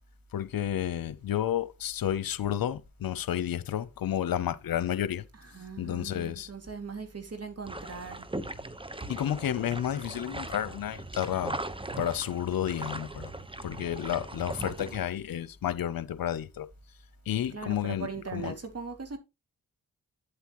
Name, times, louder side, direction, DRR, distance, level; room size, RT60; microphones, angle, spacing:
voice 1, 0.3-5.2 5.8-6.5 9.1-11.6 12.0-13.3 13.6-16.7 17.3-18.5, left 10 dB, 75° left, 0.8 m, -31 dB
voice 2, 5.5-8.3 17.5-19.2, right 4 dB, 45° right, 2.5 m, -39 dB
sound 1, 7.7-15.0, right 2 dB, 15° right, 1.1 m, -39 dB
8.8 x 8.1 x 3.1 m
supercardioid pair, 45°, 35 cm